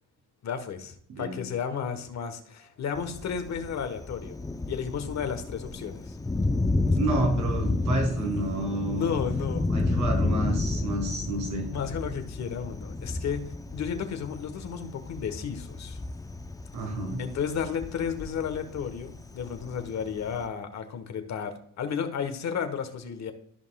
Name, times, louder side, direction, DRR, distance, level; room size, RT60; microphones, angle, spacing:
voice 1, 0.4-4.4 4.7-6.2 8.8-9.7 11.7-16.0 17.2-23.3, left 7 dB, 65° left, 8 dB, 1.2 m, -33 dB
voice 2, 1.1-1.4 6.7-9.1 9.7-11.7 16.7-17.2, right 2 dB, 80° right, 0 dB, 3.2 m, -30 dB
Thunder, 2.9-20.5, left 2 dB, 10° left, 0.5 m, -31 dB
14.0 x 5.4 x 2.3 m, 0.64 s
cardioid pair, 90°, 30 cm